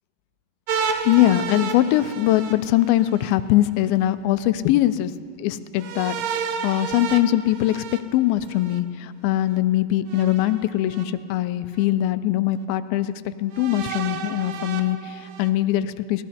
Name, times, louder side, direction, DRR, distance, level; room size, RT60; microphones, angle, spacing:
sound 1, 0.7-3.3 5.8-8.8 10.1-11.0 11.8-11.9 13.5-15.5, right 6 dB, 85° right, 2.9 m, -31 dB
voice 1, 1.1-5.1 5.4-7.8 8.1-16.2, left 14 dB, 80° left, 13 dB, 2.3 m, -22 dB
24.5 x 17.5 x 2.8 m, 2.2 s
omnidirectional pair, 4.5 m